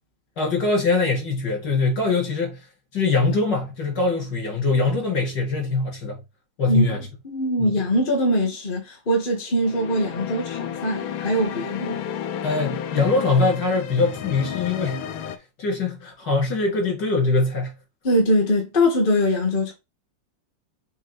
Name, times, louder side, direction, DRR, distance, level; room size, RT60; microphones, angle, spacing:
voice 1, 0.4-2.6 2.9-6.2 6.6-7.0 7.6-7.7 12.4-17.7, left 3 dB, 55° left, 4.0 m, -23 dB
voice 2, 7.3-12.0 18.0-19.7, equal, 25° left, 1.7 m, -22 dB
sound 1, 9.6-15.4, left 8 dB, 85° left, 1.5 m, -32 dB
7.4 x 4.3 x 3.2 m
omnidirectional pair, 2.2 m